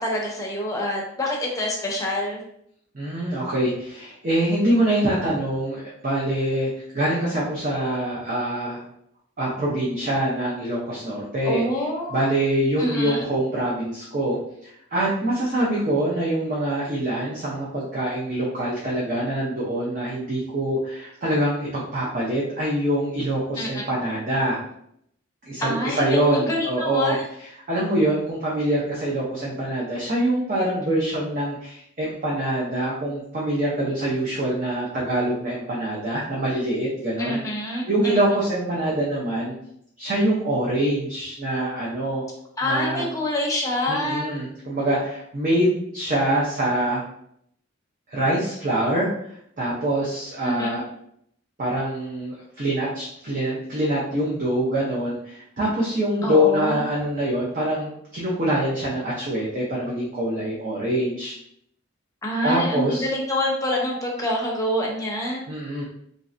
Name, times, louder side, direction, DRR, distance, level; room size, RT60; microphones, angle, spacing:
voice 1, 0.0-2.4 11.4-12.2 12.8-13.2 23.6-23.8 25.6-27.2 37.2-38.2 42.6-44.4 50.4-50.8 56.2-56.8 62.2-65.5, left 1 dB, 15° left, -2 dB, 0.6 m, -26 dB
voice 2, 2.9-8.8 9.4-11.6 12.1-14.4 14.6-24.6 25.4-27.1 27.7-37.4 37.9-39.5 40.0-42.2 42.6-43.0 43.9-47.0 48.1-49.1 49.6-50.8 51.6-61.3 62.4-63.1 65.5-65.8, right 1 dB, 40° right, -6 dB, 0.6 m, -24 dB
3.1 x 2.6 x 2.5 m, 0.71 s
head